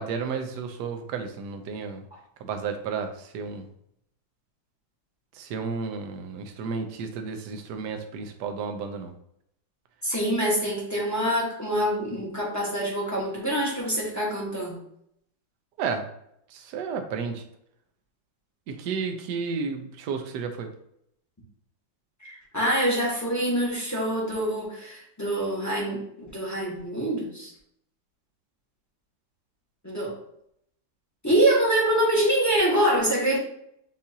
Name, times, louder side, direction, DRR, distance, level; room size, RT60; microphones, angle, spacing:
voice 1, 0.0-2.0 2.4-3.7 5.3-9.1 15.8-16.1 16.5-17.4 18.7-20.7, right 5 dB, 70° right, 5 dB, 1.1 m, -32 dB
voice 2, 10.0-14.8 22.2-27.5 29.8-30.1 31.2-33.4, right 1 dB, 10° left, -5 dB, 0.8 m, -25 dB
7.1 x 2.5 x 2.7 m, 0.75 s
omnidirectional pair, 2.0 m